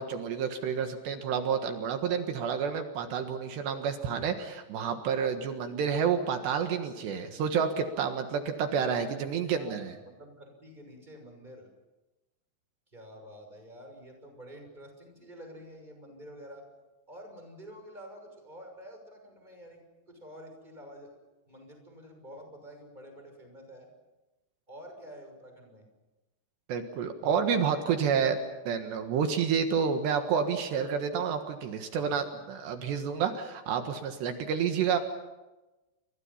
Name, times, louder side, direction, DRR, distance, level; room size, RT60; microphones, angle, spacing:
voice 1, 0.0-9.9 26.7-28.4 28.7-35.0, right 7 dB, 70° right, 6 dB, 3.5 m, -29 dB
voice 2, 9.5-11.7 12.9-16.6 17.1-21.1 21.5-23.9 24.7-25.9, equal, 10° right, 4 dB, 5.9 m, -48 dB
30.0 x 25.0 x 5.7 m, 1.1 s
omnidirectional pair, 5.5 m